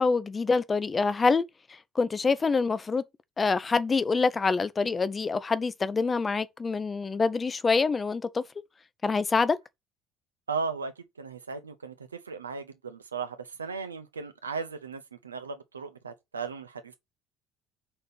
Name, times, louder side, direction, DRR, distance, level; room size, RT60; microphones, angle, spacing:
voice 1, 0.0-1.4 2.0-3.0 3.4-8.4 9.0-9.6, left 4 dB, 25° left, 0.8 m, -26 dB
voice 2, 10.5-10.9 11.2-11.9 12.3-16.9, right 5 dB, 85° right, 0.8 m, -36 dB
5.4 x 3.9 x 6.0 m
figure-of-eight pair, 55°, 0 cm